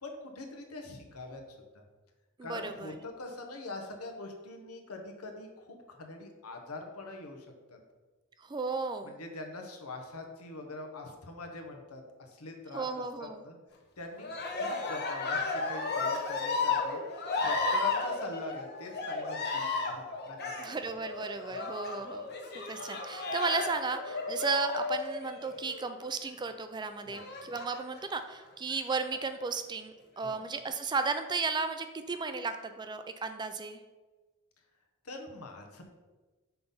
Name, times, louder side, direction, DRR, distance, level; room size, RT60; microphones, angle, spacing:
voice 1, 0.0-1.8 2.4-7.8 9.0-13.6 14.0-17.0 17.4-20.8 21.5-21.6 27.1-27.2 30.2-30.4 35.0-35.8, left 2 dB, 85° left, 3 dB, 1.1 m, -43 dB
voice 2, 2.4-3.0 8.4-9.1 12.7-13.4 20.6-22.3 22.5-33.8, right 4 dB, 20° right, 9 dB, 0.3 m, -34 dB
Cheering, 14.2-25.9 27.1-28.0 28.7-29.4, left 3 dB, 50° left, 0.9 m, -34 dB
5.8 x 3.9 x 5.4 m, 1.3 s
head